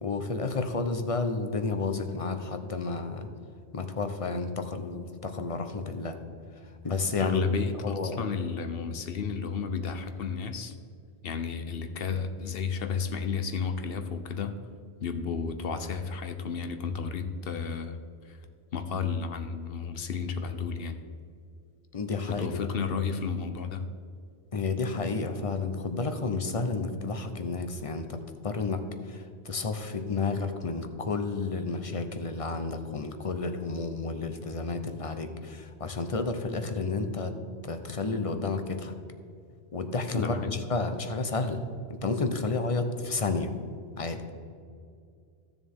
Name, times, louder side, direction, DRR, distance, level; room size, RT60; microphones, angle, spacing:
voice 1, 0.0-3.3 3.7-6.2 6.8-7.4 7.8-8.2 21.9-22.5 24.5-28.2 28.4-28.8 29.1-37.3 37.6-38.9 39.7-41.6 41.9-43.5 44.0-44.2, left 3 dB, 35° left, 8 dB, 0.8 m, -31 dB
voice 2, 7.2-10.7 11.2-14.6 15.0-18.0 18.2-18.4 18.7-21.0 22.3-23.9 40.1-40.7, left 5 dB, 65° left, 9 dB, 1.0 m, -32 dB
15.0 x 7.1 x 3.6 m, 2.4 s
omnidirectional pair, 1.1 m